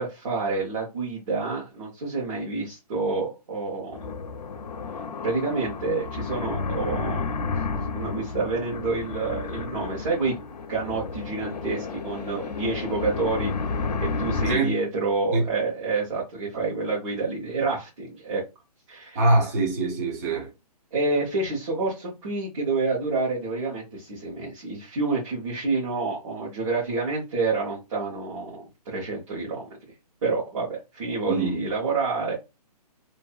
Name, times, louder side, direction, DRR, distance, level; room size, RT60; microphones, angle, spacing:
voice 1, 0.0-4.0 5.2-10.4 10.7-13.5 14.0-18.4 18.9-19.2 20.9-29.6 30.2-32.3, right 3 dB, 45° right, 1.1 m, -28 dB
sound 1, 3.9-14.6, left 4 dB, 85° left, 0.6 m, -31 dB
voice 2, 14.5-14.8 15.3-15.5 16.5-16.6 19.1-20.5 31.3-31.6, right 2 dB, 25° right, 0.6 m, -23 dB
2.6 x 2.6 x 2.3 m
hypercardioid pair, 165°, 21 cm